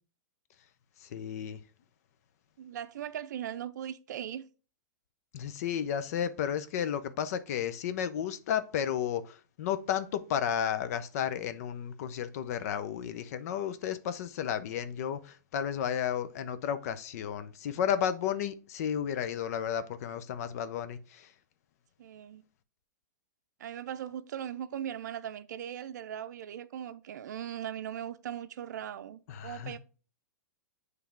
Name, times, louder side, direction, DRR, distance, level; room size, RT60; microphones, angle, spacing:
voice 1, 1.0-1.6 5.3-21.3 29.3-29.8, left 9 dB, 60° left, 0.6 m, -33 dB
voice 2, 2.6-4.5 22.0-22.4 23.6-29.8, right 10 dB, 75° right, 0.5 m, -39 dB
7.1 x 3.3 x 4.5 m
hypercardioid pair, 135°, 10 cm